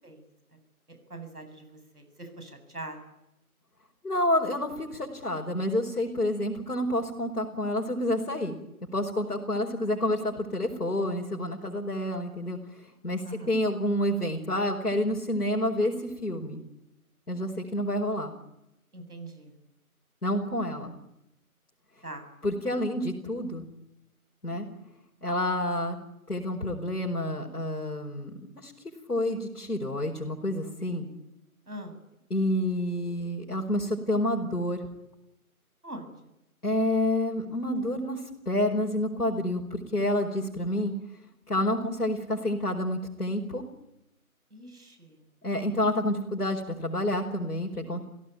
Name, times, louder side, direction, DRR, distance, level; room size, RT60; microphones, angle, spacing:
voice 1, 1.1-3.0 13.2-13.5 18.9-19.5 22.0-22.3 31.7-32.0 35.8-36.1 40.9-41.0 44.5-45.2, right 1 dB, 80° right, 6 dB, 7.7 m, -42 dB
voice 2, 4.0-8.6 8.9-16.6 17.3-18.3 20.2-20.9 22.4-23.7 24.4-24.7 25.2-26.0 26.3-28.7 29.1-31.1 32.3-34.9 36.6-40.9 41.5-43.6 45.4-48.0, left 1 dB, 85° left, -1 dB, 4.9 m, -29 dB
27.5 x 17.5 x 9.3 m, 0.87 s
figure-of-eight pair, 175°, 45 cm